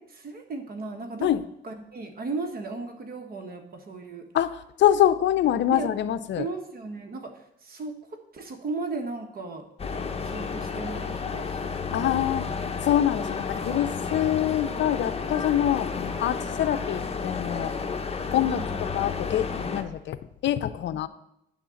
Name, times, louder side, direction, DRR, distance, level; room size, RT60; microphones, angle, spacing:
voice 1, 0.0-1.3 1.6-4.3 5.7-5.9 6.4-7.3 7.6-8.0 8.3-9.7 10.3-11.6 12.0-12.1 13.2-13.4 18.4-18.8, right 3 dB, 50° right, 4 dB, 1.4 m, -36 dB
voice 2, 4.3-6.5 11.9-12.5 12.8-17.7 18.3-18.6 18.9-20.2 20.4-21.1, left 11 dB, 65° left, 12 dB, 0.5 m, -25 dB
sound 1, 9.8-19.8, left 5 dB, 30° left, 0.9 m, -31 dB
9.3 x 3.7 x 7.1 m, 0.80 s
cardioid pair, 90°, 20 cm